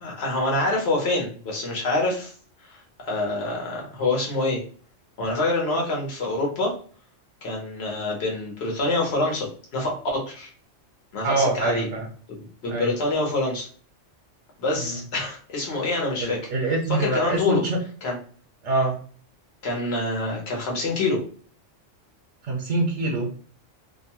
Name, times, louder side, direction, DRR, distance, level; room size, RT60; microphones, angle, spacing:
voice 1, 0.0-2.3 2.7-4.6 5.2-6.7 7.4-9.5 9.7-10.5 11.1-11.9 12.4-13.7 14.6-16.4 16.9-17.6 18.0-18.2 19.6-21.2, left 2 dB, 60° left, -1 dB, 1.2 m, -26 dB
voice 2, 11.2-12.1 12.7-12.9 14.8-15.0 16.2-17.8 18.6-19.0 22.5-23.3, right 2 dB, 70° right, -1 dB, 1.0 m, -25 dB
2.7 x 2.2 x 2.9 m, 0.43 s
omnidirectional pair, 1.3 m